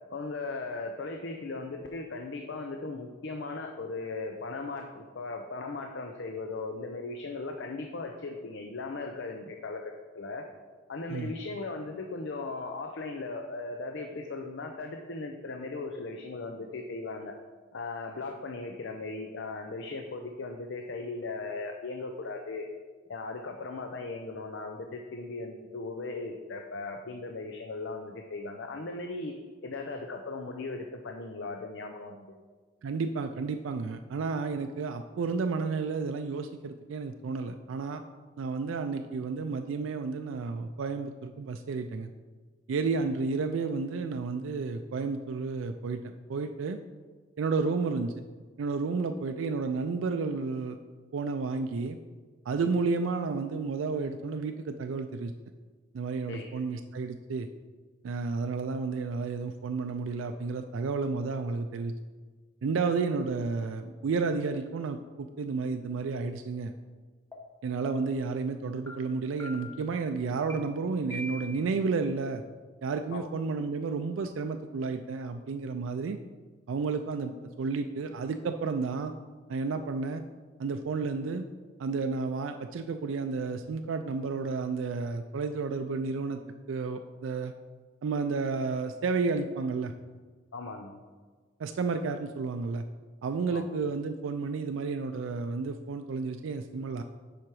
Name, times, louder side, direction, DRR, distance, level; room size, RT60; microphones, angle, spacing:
voice 1, 0.1-10.5 10.9-17.3 17.7-22.7 23.1-29.3 29.6-32.4 56.3-56.6 73.1-73.3 90.5-91.0 93.5-93.7, left 3 dB, 65° left, 4 dB, 0.6 m, -38 dB
voice 2, 32.8-38.0 38.4-42.1 42.7-46.8 47.4-48.1 48.6-50.8 51.1-52.0 52.5-55.3 55.9-57.5 58.0-61.9 62.6-66.7 67.6-72.4 72.8-76.2 76.7-79.1 79.5-80.2 80.6-81.5 81.8-86.4 86.7-87.5 88.0-89.9 91.6-92.8 93.2-97.0, right 4 dB, 80° right, 7 dB, 0.4 m, -31 dB
sound 1, 67.3-67.4 67.8-68.2 68.9-69.0 69.4-69.9 70.5-70.6 71.1-71.7, left 1 dB, 15° left, 1.0 m, -42 dB
7.4 x 5.0 x 4.7 m, 1.4 s
head